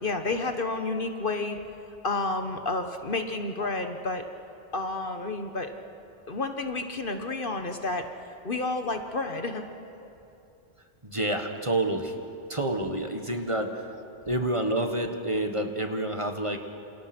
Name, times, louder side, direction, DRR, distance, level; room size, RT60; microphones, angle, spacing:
voice 1, 0.0-1.6 2.0-4.2 4.7-5.7 6.3-8.1 8.4-9.6, left 3 dB, 50° left, 6 dB, 1.4 m, -30 dB
voice 2, 11.0-12.1 12.5-13.9 14.3-16.6, right 1 dB, 25° right, 5 dB, 1.5 m, -28 dB
28.0 x 28.0 x 6.1 m, 2.8 s
omnidirectional pair, 1.2 m